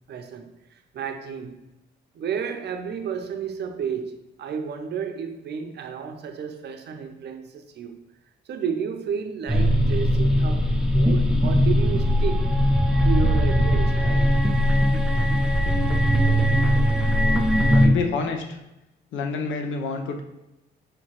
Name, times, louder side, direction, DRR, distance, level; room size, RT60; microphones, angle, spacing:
voice 1, 0.1-1.6 2.1-8.0 8.5-12.5 13.0-14.4, right 6 dB, 60° right, 6 dB, 0.5 m, -32 dB
sound 1, 9.5-17.9, equal, 5° right, 0.5 m, -20 dB
voice 2, 17.7-18.6 19.1-20.2, left 4 dB, 75° left, 5 dB, 0.6 m, -28 dB
5.1 x 2.8 x 2.9 m, 0.93 s
cardioid pair, 90°, 20 cm